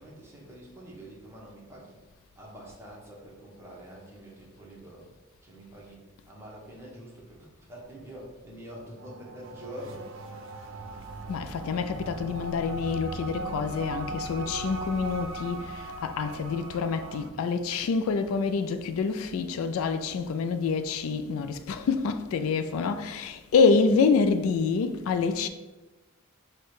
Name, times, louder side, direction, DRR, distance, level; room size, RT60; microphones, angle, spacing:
voice 1, 0.0-5.1 5.4-10.2, equal, 10° right, 0.9 m, -46 dB
sound 1, 9.0-17.3, right 2 dB, 65° right, 0.4 m, -38 dB
voice 2, 11.3-25.5, left 5 dB, 80° left, 0.3 m, -27 dB
4.4 x 2.2 x 4.6 m
head